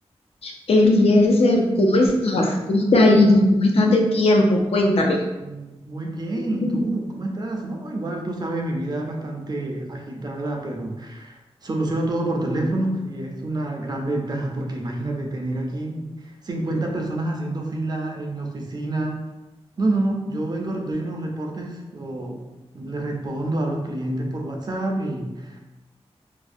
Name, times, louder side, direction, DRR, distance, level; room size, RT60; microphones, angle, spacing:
voice 1, 0.4-5.2 6.6-6.8, left 1 dB, 65° left, 1 dB, 0.4 m, -17 dB
voice 2, 5.4-19.2 19.8-22.4 22.7-25.6, right 2 dB, 40° right, 1 dB, 0.4 m, -28 dB
2.4 x 2.0 x 2.5 m, 1.1 s
wide cardioid pair, 115°, 11 cm